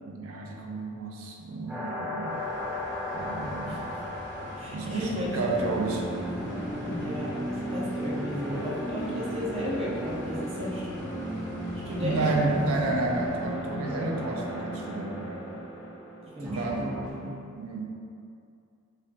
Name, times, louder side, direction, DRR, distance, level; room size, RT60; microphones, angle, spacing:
voice 1, 0.0-2.4 3.1-3.8 4.7-6.1 12.0-15.5 16.4-16.9 17.5-17.9, right 2 dB, 80° right, -1 dB, 0.5 m, -31 dB
sound 1, 1.7-17.1, equal, 10° right, 1.4 m, -35 dB
sound 2, 2.3-13.6, equal, 60° left, 1.0 m, -43 dB
voice 2, 4.5-5.5 6.8-11.0 11.8-12.5 16.4-17.4, equal, 25° right, -6 dB, 0.5 m, -34 dB
5.3 x 2.5 x 2.2 m, 2.5 s
head